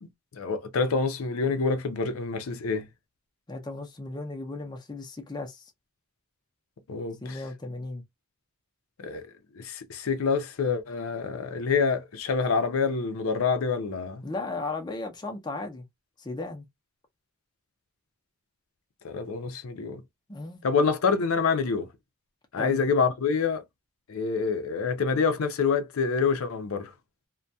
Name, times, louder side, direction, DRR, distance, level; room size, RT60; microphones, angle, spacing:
voice 1, 0.0-2.9 6.9-7.4 9.0-9.3 9.6-14.2 19.0-20.0 20.6-21.9 22.5-23.6 24.1-26.9, left 5 dB, 75° left, 0.5 m, -27 dB
voice 2, 3.5-5.7 7.2-8.0 14.2-15.8 16.2-16.6 20.3-20.6 22.6-22.8, left 2 dB, 20° left, 0.5 m, -35 dB
2.2 x 2.2 x 2.6 m
head